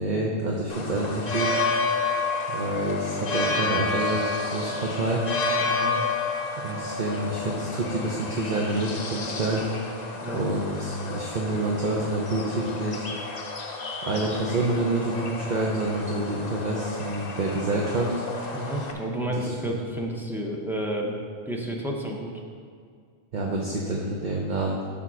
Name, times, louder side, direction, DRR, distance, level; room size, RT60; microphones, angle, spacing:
voice 1, 0.0-1.6 2.5-5.2 6.6-9.7 10.3-13.1 14.0-18.1 19.3-19.8 23.3-24.8, right 2 dB, 50° right, -2 dB, 0.9 m, -27 dB
sound 1, 0.7-18.9, left 3 dB, 45° left, 0.8 m, -31 dB
voice 2, 5.7-6.0 10.2-10.4 18.5-21.1 21.5-22.3, right 1 dB, ahead, -2 dB, 0.9 m, -30 dB
9.9 x 4.0 x 6.2 m, 2.1 s
omnidirectional pair, 1.0 m